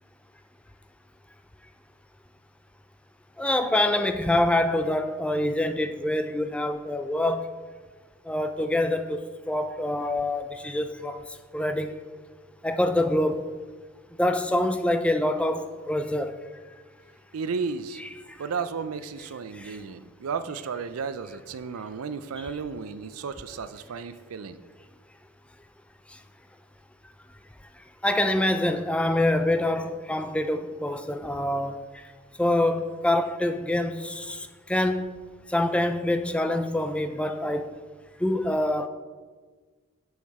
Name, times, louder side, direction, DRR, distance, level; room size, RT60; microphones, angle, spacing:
voice 1, 3.4-7.5 8.2-12.0 12.6-13.5 14.2-16.4 18.0-18.5 19.5-19.8 22.4-22.5 26.1-26.2 27.7-32.1 32.4-35.2 35.5-37.8 38.2-38.9, left 1 dB, 5° left, 0.3 m, -26 dB
voice 2, 17.3-18.0 18.4-24.6, right 5 dB, 85° right, 0.5 m, -33 dB
7.1 x 6.4 x 4.8 m
head